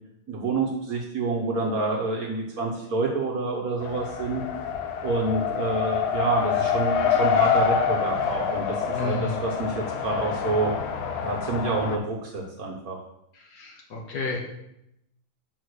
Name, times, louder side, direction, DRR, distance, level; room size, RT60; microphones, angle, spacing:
voice 1, 0.3-4.4 5.0-10.7 11.2-13.0, right 3 dB, 55° right, -1 dB, 1.1 m, -28 dB
Race car auto racing, 3.8-12.0, left 7 dB, 80° left, 1.5 m, -26 dB
voice 2, 8.9-9.5 13.5-14.4, left 2 dB, 60° left, 1 dB, 1.3 m, -31 dB
6.4 x 4.1 x 6.3 m, 0.81 s
omnidirectional pair, 2.3 m